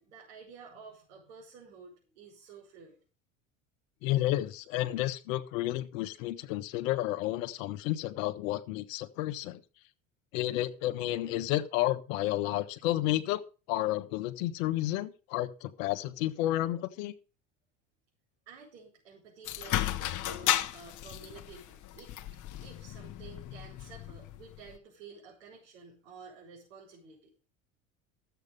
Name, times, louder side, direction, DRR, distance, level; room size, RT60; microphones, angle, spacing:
voice 1, 0.0-3.0 18.5-22.1 22.6-27.2, right 5 dB, 80° right, 5.5 m, -51 dB
voice 2, 4.0-9.6 10.3-13.4 13.7-17.1, left 15 dB, 75° left, 1.3 m, -31 dB
sound 1, 19.4-24.8, left 12 dB, 50° left, 1.3 m, -34 dB
13.5 x 8.2 x 5.4 m
hypercardioid pair, 85°, 40 cm